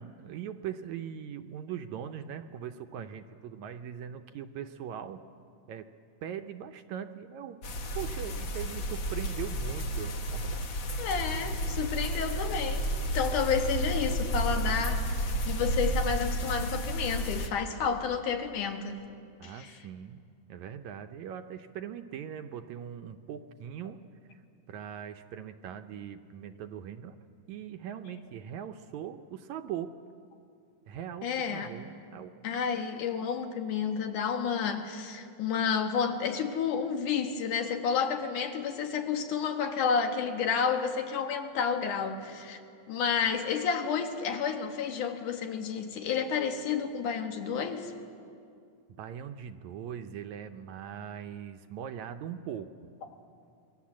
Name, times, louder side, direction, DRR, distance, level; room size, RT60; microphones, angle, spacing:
voice 1, 0.0-5.2 5.7-5.9 6.2-7.6 8.0-10.7 19.4-20.2 20.5-24.0 24.3-24.4 24.7-27.2 27.5-29.9 30.9-32.8 49.0-52.7, right 9 dB, 75° right, 8 dB, 1.9 m, -40 dB
sound 1, 7.6-17.5, right 1 dB, 50° left, 1.7 m, -32 dB
voice 2, 11.0-12.8 13.1-15.0 15.5-19.0 19.4-19.8 31.2-31.7 32.4-42.6 42.9-47.9, left 6 dB, 75° left, 5 dB, 3.0 m, -30 dB
27.5 x 22.0 x 7.4 m, 2.4 s
omnidirectional pair, 3.7 m